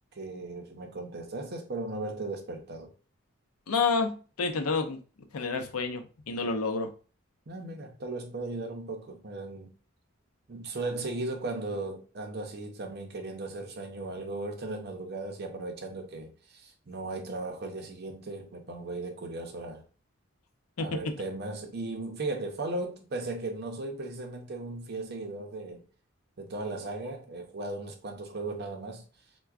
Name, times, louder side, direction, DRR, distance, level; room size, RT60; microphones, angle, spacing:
voice 1, 0.1-2.9 7.5-9.7 10.5-19.8 20.8-25.8 26.4-29.1, right 2 dB, 50° right, 0.6 m, -37 dB
voice 2, 3.7-5.0 5.3-6.9 20.8-20.9, left 4 dB, 85° left, 0.5 m, -29 dB
4.4 x 2.2 x 2.4 m
head